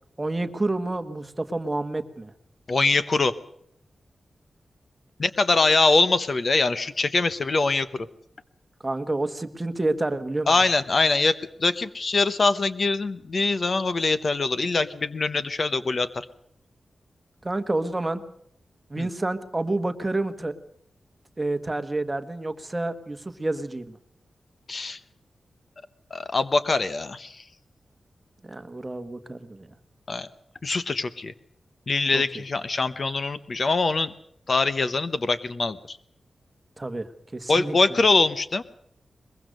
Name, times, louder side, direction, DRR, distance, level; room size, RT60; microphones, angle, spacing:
voice 1, 0.2-2.3 8.8-10.6 17.4-18.2 18.9-20.5 21.4-24.0 28.4-29.7 32.1-32.2 36.8-37.7, right 2 dB, 15° right, 9 dB, 1.4 m, -29 dB
voice 2, 2.7-3.3 5.2-8.1 10.5-16.3 19.0-19.1 24.7-25.0 26.1-27.4 30.1-30.3 30.6-31.3 31.9-34.1 34.5-36.0 37.5-38.6, left 3 dB, 40° left, 13 dB, 0.9 m, -23 dB
22.5 x 21.5 x 6.5 m, 0.70 s
wide cardioid pair, 160°, 0 cm